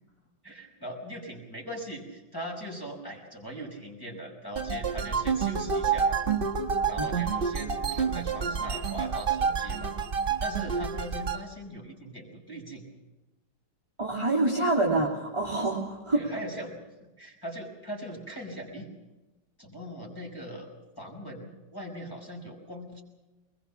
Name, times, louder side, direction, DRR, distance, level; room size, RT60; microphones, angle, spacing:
voice 1, 0.4-6.2 6.9-9.9 10.4-12.8 14.9-15.0 16.1-16.8 17.2-18.9 19.6-20.7 21.0-23.0, equal, 10° left, -1 dB, 5.3 m, -40 dB
sound 1, 4.6-11.4, right 6 dB, 35° right, 1.4 m, -28 dB
voice 2, 14.0-16.2, right 2 dB, 15° right, -4 dB, 2.7 m, -26 dB
23.5 x 21.0 x 7.2 m, 1.1 s
omnidirectional pair, 1.9 m